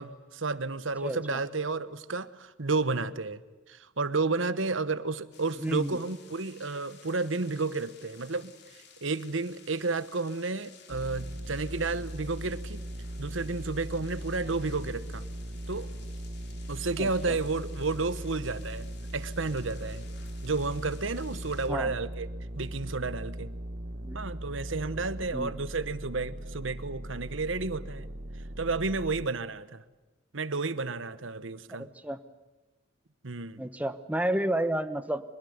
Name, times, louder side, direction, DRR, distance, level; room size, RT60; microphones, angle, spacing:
voice 1, 0.0-3.4 3.7-12.8 13.2-15.2 15.7-15.9 16.7-20.1 20.4-22.3 22.5-23.5 24.1-28.1 28.6-29.8 30.3-31.9 33.2-33.6, right 3 dB, 75° right, 14 dB, 1.1 m, -32 dB
voice 2, 1.0-1.4 5.6-6.0 17.0-17.4 21.7-21.9 24.0-24.2 25.3-25.5 31.8-32.2 33.6-35.2, right 1 dB, 10° right, 10 dB, 1.1 m, -31 dB
sound 1, 5.3-21.7, left 7 dB, 55° left, 3.2 m, -55 dB
sound 2, 10.9-29.3, right 1 dB, 50° right, 1.4 m, -39 dB
23.5 x 21.5 x 9.5 m, 1.1 s
head